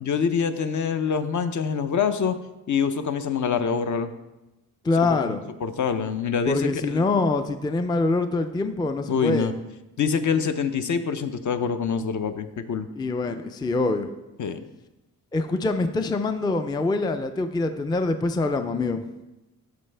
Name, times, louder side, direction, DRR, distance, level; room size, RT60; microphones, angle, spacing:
voice 1, 0.0-2.4 2.7-4.1 5.0-7.1 9.1-9.5 10.0-12.9 14.4-14.6, left 6 dB, 55° left, 9 dB, 0.6 m, -25 dB
voice 2, 4.8-5.4 6.5-9.6 13.0-14.1 15.3-19.0, left 3 dB, 10° left, 8 dB, 0.4 m, -24 dB
13.0 x 4.8 x 3.3 m, 1.0 s
wide cardioid pair, 115°, 36 cm